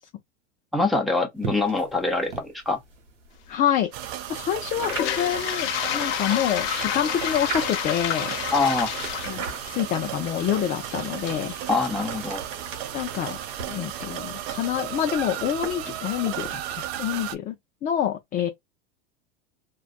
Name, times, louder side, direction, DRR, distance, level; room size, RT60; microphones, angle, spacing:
voice 1, 0.7-2.8 8.5-8.9 11.7-12.4, left 3 dB, ahead, 0.7 m, -24 dB
sound 1, 1.4-3.6 4.6-5.4 6.3-8.0 8.7-10.1 10.8-17.3, right 4 dB, 90° right, 1.0 m, -39 dB
voice 2, 3.5-8.3 9.3-11.5 12.9-13.4 13.7-17.6 17.8-18.5, left 10 dB, 25° left, 0.4 m, -27 dB
sound 2, 3.9-17.4, right 12 dB, 60° right, 0.5 m, -35 dB
Toilet flush, 4.8-12.7, left 11 dB, 65° left, 0.7 m, -30 dB
2.5 x 2.2 x 2.3 m
hypercardioid pair, 100°, 36 cm